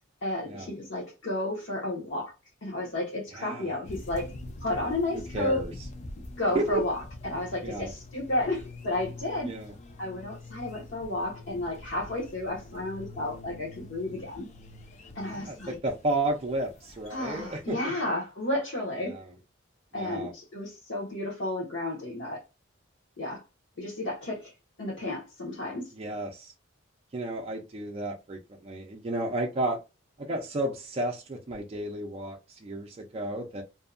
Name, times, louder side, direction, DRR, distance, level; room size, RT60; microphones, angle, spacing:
voice 1, 0.2-2.3 2.6-4.3 4.6-5.7 6.4-9.5 10.0-14.5 15.1-15.8 17.1-19.2 19.9-22.4 23.2-23.4 23.8-24.5 24.8-25.9, left 1 dB, 65° left, 0.9 m, -32 dB
voice 2, 3.3-3.8 5.1-5.7 6.5-6.8 7.6-7.9 9.4-9.7 15.3-17.9 19.0-19.2 20.0-20.3 25.9-26.5 27.1-29.8 30.2-33.6, right 2 dB, 30° right, 0.4 m, -32 dB
sound 1, 3.8-17.7, left 2 dB, 35° left, 0.4 m, -45 dB
2.6 x 2.2 x 2.4 m
head